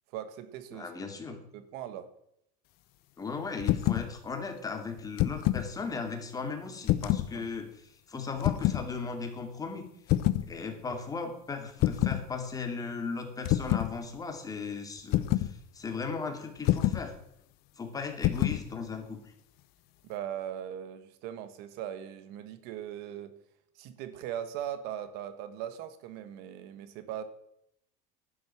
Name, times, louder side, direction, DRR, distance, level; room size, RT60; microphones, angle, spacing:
voice 1, 0.1-0.9 1.3-2.1 7.3-7.4 20.0-23.3 23.8-27.2, right 10 dB, 65° right, 12 dB, 1.4 m, -39 dB
voice 2, 0.7-1.4 3.2-9.9 10.4-17.1 17.8-19.3, left 4 dB, 20° left, 5 dB, 2.6 m, -37 dB
sound 1, 3.6-4.1 5.0-5.7 6.8-7.3 8.4-8.8 10.1-10.5 11.8-12.2 13.5-13.9 15.1-15.5 16.7-17.1 18.2-18.6, left 15 dB, 60° left, 0.9 m, -26 dB
11.0 x 10.5 x 6.0 m, 0.74 s
supercardioid pair, 125°, 18 cm